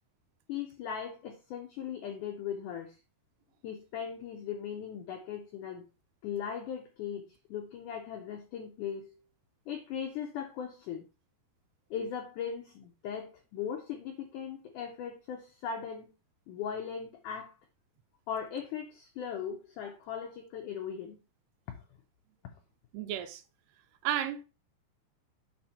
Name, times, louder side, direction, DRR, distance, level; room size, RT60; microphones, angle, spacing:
voice 1, 0.5-3.0 3.6-5.8 6.2-9.2 9.7-11.0 11.9-16.1 16.5-17.5 18.3-21.2 21.7-21.8, left 7 dB, 90° left, 1.8 m, -38 dB
voice 2, 22.9-23.4 24.0-24.5, right 11 dB, 85° right, 2.6 m, -32 dB
7.0 x 2.9 x 5.6 m
omnidirectional pair, 4.7 m